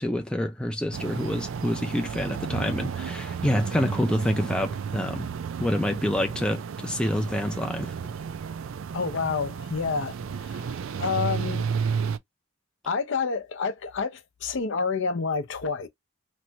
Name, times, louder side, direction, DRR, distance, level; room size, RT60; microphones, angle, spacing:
voice 1, 0.0-5.3 5.6-7.9, left 1 dB, 5° left, 0.4 m, -27 dB
sound 1, 0.9-12.2, right 6 dB, 70° right, 0.4 m, -32 dB
voice 2, 8.9-10.2 10.4-10.7 11.0-11.7 12.8-15.9, left 5 dB, 60° left, 0.6 m, -28 dB
3.0 x 2.2 x 2.6 m
head